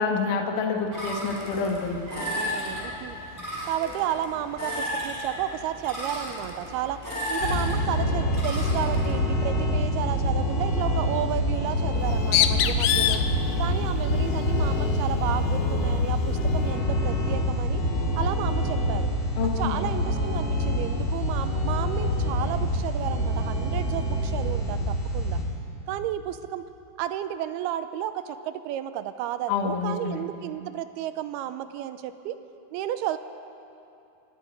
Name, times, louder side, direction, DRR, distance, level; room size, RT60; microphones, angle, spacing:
voice 1, 0.0-2.0 19.4-19.8 29.5-30.2, left 5 dB, 60° left, 2 dB, 2.7 m, -27 dB
sound 1, 0.9-9.2, equal, 5° right, 4.8 m, -34 dB
voice 2, 2.2-3.2 3.6-7.0 7.3-13.2 13.6-17.8 18.2-19.1 19.6-25.4 25.9-26.6 27.0-32.4 32.7-33.2, right 11 dB, 85° right, 11 dB, 2.6 m, -32 dB
sound 2, 7.4-25.4, left 1 dB, 30° left, 2.4 m, -26 dB
Bird, 11.9-16.8, left 11 dB, 80° left, 2.7 m, -28 dB
25.0 x 21.0 x 5.2 m, 2.7 s
omnidirectional pair, 4.7 m